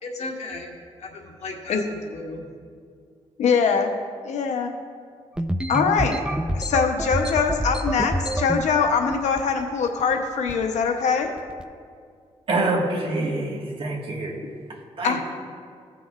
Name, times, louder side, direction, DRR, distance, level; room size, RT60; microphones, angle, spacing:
voice 1, 0.0-2.5, left 2 dB, 70° left, 0 dB, 1.4 m, -36 dB
voice 2, 3.4-3.9 4.2-4.7 5.7-6.2 6.5-11.3 15.0-15.2, left 5 dB, 90° left, 4 dB, 0.9 m, -22 dB
sound 1, 5.4-8.7 9.1-9.6 9.9-10.2 10.5-10.8 11.4-11.6, right 1 dB, 10° right, 0.4 m, -27 dB
voice 3, 12.5-14.3 15.0-15.2, right 2 dB, 50° right, -1 dB, 1.7 m, -25 dB
16.5 x 5.8 x 2.5 m, 2.1 s
cardioid pair, 90°, 12 cm